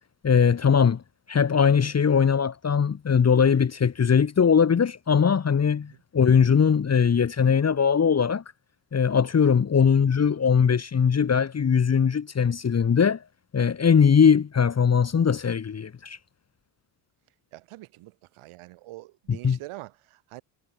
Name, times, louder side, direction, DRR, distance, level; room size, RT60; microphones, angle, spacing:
voice 1, 0.2-1.0 1.3-8.4 8.9-13.2 13.5-16.2 19.4-19.6, left 6 dB, 30° left, 1.8 m, -20 dB
voice 2, 17.5-20.4, right 18 dB, 80° right, 5.7 m, -44 dB
cardioid pair, 90°, 49 cm